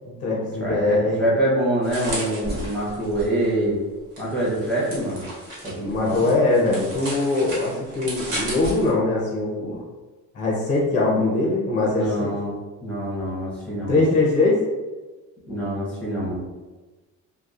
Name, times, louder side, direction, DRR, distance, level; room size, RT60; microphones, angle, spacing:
voice 1, 0.0-1.3 5.8-9.8 10.3-12.3 13.9-14.6, left 2 dB, 25° left, -4 dB, 0.5 m, -22 dB
voice 2, 0.6-3.8 4.2-5.2 5.6-6.3 11.9-12.5 12.8-14.0 15.5-16.4, right 1 dB, 5° left, -8 dB, 0.8 m, -25 dB
sound 1, 1.8-3.5 4.2-8.9, right 1 dB, 70° right, 1.2 m, -34 dB
2.7 x 2.1 x 2.4 m, 1.2 s
cardioid pair, 155°, 31 cm